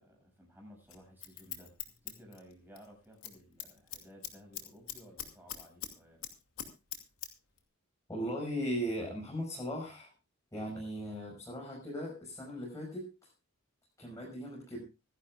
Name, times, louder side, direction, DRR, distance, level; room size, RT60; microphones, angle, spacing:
voice 1, 0.0-6.2, equal, 10° right, 0 dB, 7.1 m, -56 dB
Scissors, 0.9-2.9 3.1-3.4 3.6-5.9 6.2-7.3 7.6-7.7, left 11 dB, 70° left, 2.5 m, -42 dB
voice 2, 8.1-10.1 10.5-13.3 14.0-14.8, equal, 15° left, -3 dB, 5.5 m, -38 dB
25.5 x 11.5 x 2.4 m, 0.29 s
head